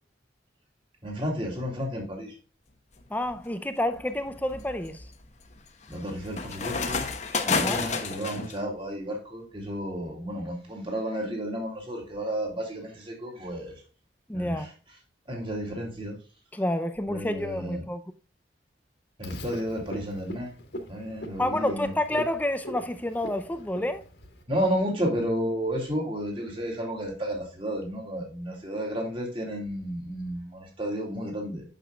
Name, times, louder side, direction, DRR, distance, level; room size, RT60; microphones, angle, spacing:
voice 1, 1.0-2.3 5.9-7.1 7.5-13.7 14.3-14.7 15.3-16.2 17.1-17.8 19.2-20.6 20.9-22.2 24.5-31.6, equal, 30° right, 2.5 m, -32 dB
sound 1, 3.0-3.3 3.9-8.5, left 4 dB, 35° left, 1.0 m, -31 dB
voice 2, 3.1-5.0 7.5-7.8 14.3-14.7 16.5-18.0 21.4-24.0, left 1 dB, 10° left, 0.5 m, -29 dB
Frog, 19.2-24.4, equal, 60° left, 1.7 m, -41 dB
9.1 x 6.7 x 2.3 m
head